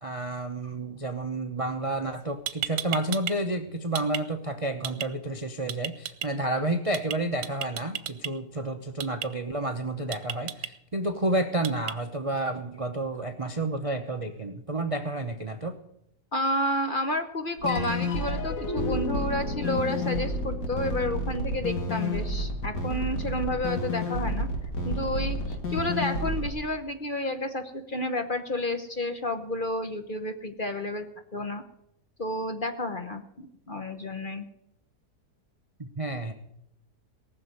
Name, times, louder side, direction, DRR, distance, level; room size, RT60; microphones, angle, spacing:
voice 1, 0.0-15.8 35.8-36.3, right 2 dB, 30° right, 7 dB, 0.6 m, -30 dB
sound 1, 2.1-2.2 2.5-3.3 3.6-4.2 4.8-5.1 5.7-6.3 6.9-7.2 7.4-8.3 9.0-9.3 10.1-10.7 11.6-11.9, right 11 dB, 85° right, 1.4 m, -33 dB
voice 2, 16.3-24.5 24.8-31.1 31.3-31.6 32.2-34.4, left 1 dB, 35° left, 7 dB, 1.0 m, -31 dB
sound 2, 17.6-26.5, equal, 80° left, 2.8 m, -30 dB
sound 3, 17.7-24.3, left 4 dB, 55° left, 2.0 m, -38 dB
18.5 x 6.8 x 9.5 m, 0.79 s
omnidirectional pair, 1.8 m